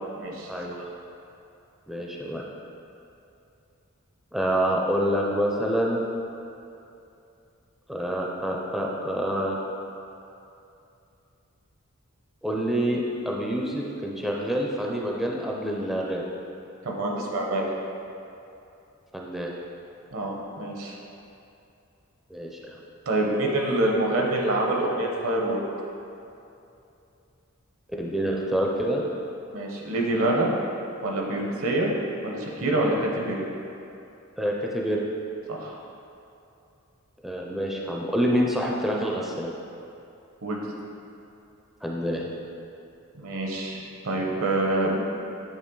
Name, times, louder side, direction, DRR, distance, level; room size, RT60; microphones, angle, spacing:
voice 1, 0.2-0.8 16.8-17.6 20.1-21.0 23.1-25.6 29.5-30.5 31.0-31.9 32.2-33.4 35.5-35.8 40.4-40.6 43.2-45.0, right 1 dB, 75° right, -1 dB, 0.9 m, -26 dB
voice 2, 1.9-2.4 4.3-6.0 7.9-9.6 12.4-16.2 19.1-19.5 22.3-22.8 28.0-29.0 34.4-35.0 37.2-39.5 41.8-42.2, equal, ahead, -2 dB, 0.4 m, -27 dB
8.4 x 3.4 x 3.8 m, 2.7 s
head